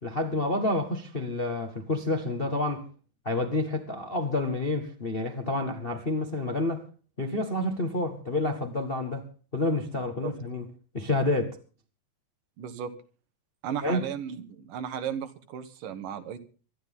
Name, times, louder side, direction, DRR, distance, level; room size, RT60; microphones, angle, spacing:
voice 1, 0.0-2.9 3.2-6.8 7.2-9.3 9.5-10.6 10.9-11.6 13.8-14.1, left 2 dB, 35° left, 0.9 m, -29 dB
voice 2, 12.6-12.9 13.6-16.4, right 8 dB, 80° right, 3.0 m, -35 dB
24.0 x 11.5 x 3.7 m
omnidirectional pair, 3.7 m